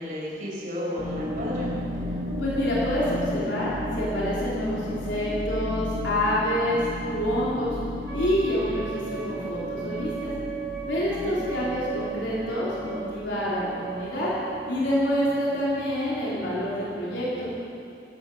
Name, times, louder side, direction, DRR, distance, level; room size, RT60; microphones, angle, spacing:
voice 1, 0.0-1.7 11.0-11.4, equal, 45° right, -5 dB, 4.9 m, -33 dB
sound 1, 1.0-17.6, left 1 dB, 25° right, 2.9 m, -35 dB
voice 2, 2.4-7.8 8.1-10.3 10.9-14.3 14.7-17.5, equal, 85° left, -7 dB, 3.5 m, -27 dB
Wind instrument woodwind instrument, 8.0-14.6, right 7 dB, 75° right, 4.8 m, -38 dB
15.5 x 13.5 x 6.2 m, 2.7 s
head